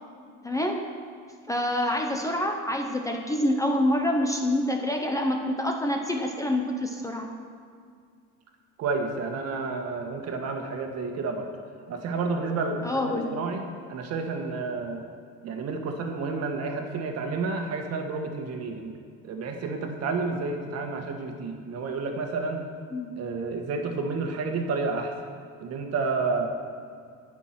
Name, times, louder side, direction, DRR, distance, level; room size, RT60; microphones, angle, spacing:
voice 1, 0.4-0.9 1.5-7.3 12.8-13.3 22.9-23.2, left 1 dB, 10° left, 3 dB, 0.7 m, -27 dB
voice 2, 8.8-11.5 11.9-15.0 15.4-18.9 19.2-22.6 23.2-25.1 25.6-26.5, right 4 dB, 50° right, 3 dB, 1.6 m, -30 dB
18.5 x 6.2 x 6.0 m, 2.2 s
cardioid pair, 150°, 33 cm